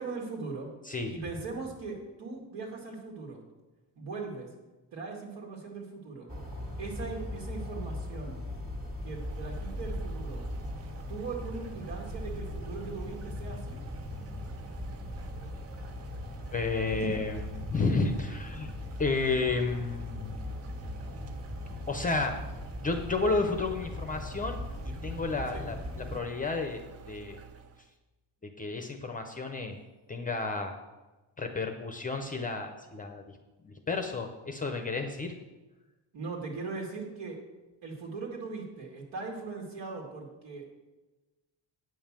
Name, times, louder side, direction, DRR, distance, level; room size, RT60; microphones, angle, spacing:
voice 1, 0.0-0.7 1.1-3.4 4.0-4.5 4.9-6.3 6.8-8.4 9.0-10.4 11.1-13.8 17.0-17.1 25.5-25.7 36.1-37.4 37.8-40.7, right 4 dB, 75° right, -1 dB, 2.3 m, -39 dB
sound 1, 6.3-26.2, left 1 dB, 20° right, 1.7 m, -39 dB
sound 2, 9.0-27.9, right 6 dB, 35° right, 0.5 m, -49 dB
voice 2, 16.5-18.7 19.0-20.5 21.9-22.3 22.8-24.6 25.0-27.4 28.4-29.8 30.1-30.7 31.4-33.4 33.6-35.3, left 3 dB, 20° left, 5 dB, 0.6 m, -31 dB
9.3 x 5.4 x 7.4 m, 1.1 s
cardioid pair, 170°, 44 cm